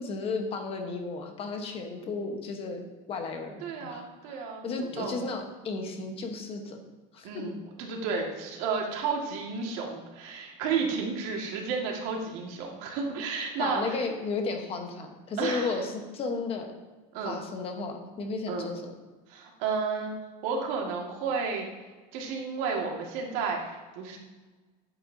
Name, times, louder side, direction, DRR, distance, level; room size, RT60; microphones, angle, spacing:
voice 1, 0.0-6.8 7.1-7.3 13.6-16.7 17.2-18.8, left 4 dB, 30° left, 4 dB, 1.0 m, -34 dB
voice 2, 3.6-5.3 7.2-14.0 15.4-15.8 17.1-17.4 18.5-18.7 19.3-20.1 20.4-21.7 22.1-24.2, right 5 dB, 75° right, 0 dB, 1.8 m, -32 dB
10.0 x 8.0 x 2.7 m, 1.3 s
cardioid pair, 170°, 19 cm